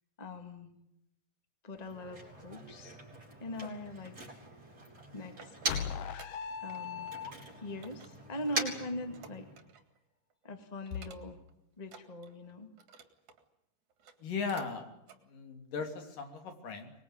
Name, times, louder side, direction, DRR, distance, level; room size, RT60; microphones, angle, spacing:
voice 1, 0.2-0.7 1.6-3.0 3.4-4.2 5.1-5.6 6.6-7.1 7.6-9.5 10.4-11.4 11.8-12.7, left 1 dB, 15° left, 7 dB, 1.7 m, -41 dB
Motor vehicle (road), 1.7-6.1 6.4-9.7, right 2 dB, 25° right, 5.3 m, -42 dB
sound 1, 4.8-6.8 7.1-7.5 7.8-10.0 10.3-10.5 10.9-11.5 11.8-13.4 13.9-14.7 15.0-15.2 15.7-15.8, right 5 dB, 65° right, 3.4 m, -55 dB
sound 2, 5.7-7.8, left 7 dB, 60° left, 1.7 m, -38 dB
voice 2, 14.2-14.8 15.3-16.9, left 5 dB, 85° left, 5 dB, 4.7 m, -37 dB
25.0 x 21.5 x 9.5 m, 0.83 s
omnidirectional pair, 3.7 m